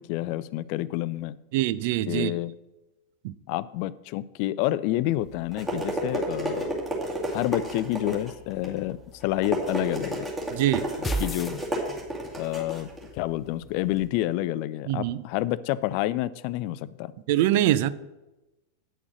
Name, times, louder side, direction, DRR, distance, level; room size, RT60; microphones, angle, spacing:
voice 1, 0.0-1.3 2.1-2.5 3.5-6.7 7.3-10.2 11.2-11.6 12.4-12.9 13.1-17.1, left 15 dB, 45° left, 18 dB, 0.4 m, -28 dB
voice 2, 1.5-2.4 3.2-3.3 10.5-10.9 14.9-15.2 17.3-17.9, right 13 dB, 50° right, 16 dB, 0.4 m, -24 dB
sound 1, 5.2-14.1, right 1 dB, 15° right, 2.3 m, -32 dB
sound 2, 11.0-12.3, right 1 dB, 15° left, 0.7 m, -31 dB
9.1 x 6.0 x 6.3 m, 1.0 s
figure-of-eight pair, 90°, 0 cm